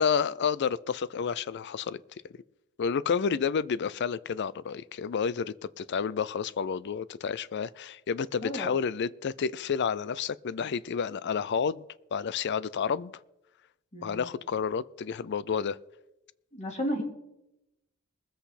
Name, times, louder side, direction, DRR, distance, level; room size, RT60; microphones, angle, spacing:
voice 1, 0.0-2.0 2.8-11.8 12.1-13.1 14.0-15.8, left 6 dB, 50° left, 0.4 m, -30 dB
voice 2, 8.4-8.8 13.9-14.3 16.5-17.0, equal, 30° left, 2.7 m, -33 dB
21.0 x 8.0 x 4.2 m
head